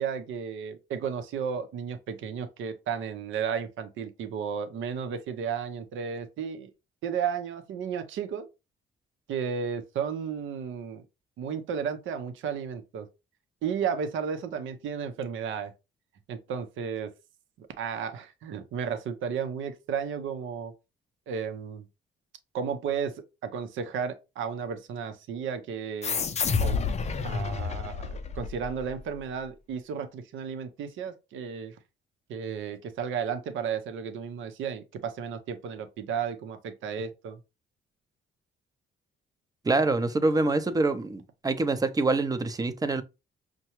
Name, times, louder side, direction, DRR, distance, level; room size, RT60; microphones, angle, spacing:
voice 1, 0.0-6.7 7.0-8.5 9.3-11.0 11.4-13.1 13.6-15.7 16.3-17.1 17.6-20.7 21.3-21.8 22.5-23.1 23.4-26.2 26.6-26.8 27.2-31.7 32.3-37.4, right 7 dB, 80° right, 0.7 m, -33 dB
sound 1, 26.0-29.1, left 5 dB, 35° left, 0.5 m, -29 dB
voice 2, 39.6-43.0, right 3 dB, 20° right, 0.6 m, -25 dB
5.7 x 2.2 x 3.0 m
cardioid pair, 90°, 20 cm